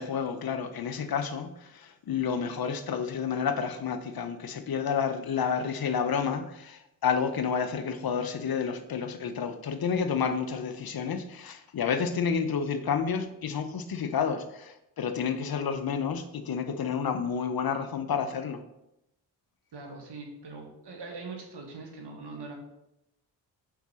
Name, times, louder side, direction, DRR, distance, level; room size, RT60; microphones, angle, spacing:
voice 1, 0.0-18.6, left 6 dB, 50° left, 9 dB, 0.8 m, -30 dB
voice 2, 19.7-22.6, right 3 dB, 60° right, 2 dB, 1.8 m, -42 dB
4.6 x 4.6 x 5.6 m, 0.86 s
supercardioid pair, 45°, 45 cm